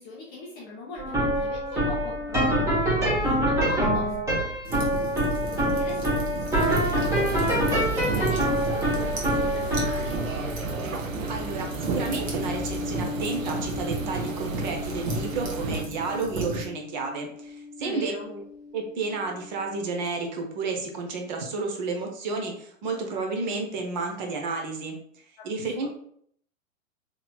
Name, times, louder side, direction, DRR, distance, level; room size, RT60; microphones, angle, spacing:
voice 1, 0.0-4.1 5.4-10.2 17.8-18.3 25.4-25.5, left 2 dB, 20° left, -4 dB, 0.4 m, -41 dB
sound 1, 1.0-18.2, equal, 5° right, 0.9 m, -27 dB
Forge - Coal burning short, 4.6-16.6, right 3 dB, 50° right, 1.1 m, -35 dB
sound 2, 6.6-15.9, right 4 dB, 75° right, 0.6 m, -35 dB
voice 2, 11.3-18.4 18.7-25.0 25.4-25.9, right 4 dB, 35° right, 2 dB, 0.7 m, -31 dB
4.0 x 2.9 x 2.2 m, 0.64 s
figure-of-eight pair, 105°, 41 cm